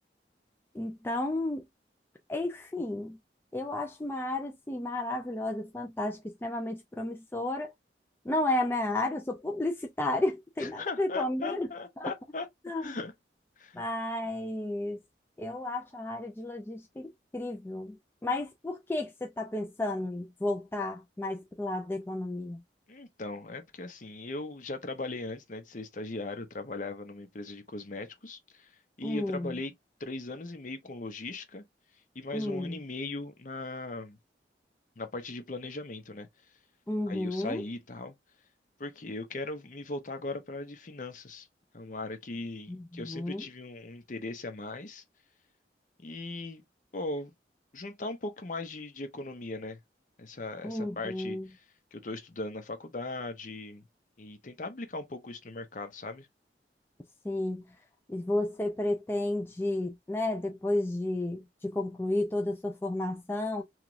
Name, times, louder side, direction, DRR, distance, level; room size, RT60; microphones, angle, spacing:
voice 1, 0.7-1.6 2.3-3.2 3.5-7.7 8.3-11.7 12.0-12.1 12.7-12.8 13.8-15.0 15.4-18.0 18.2-22.6 29.0-29.5 32.3-32.8 36.9-37.6 42.7-43.4 50.6-51.5 57.2-57.6 58.1-63.6, left 1 dB, 15° left, 0.3 m, -32 dB
voice 2, 10.6-12.5 12.8-13.1 13.6-13.8 22.9-28.7 29.0-29.7 30.0-31.6 32.1-34.2 35.0-36.3 37.1-38.1 38.8-41.5 41.7-45.0 46.0-46.6 46.9-47.3 47.7-49.8 50.2-51.6 51.9-53.8 54.2-56.3, left 2 dB, 45° left, 0.7 m, -39 dB
3.0 x 2.4 x 2.4 m
head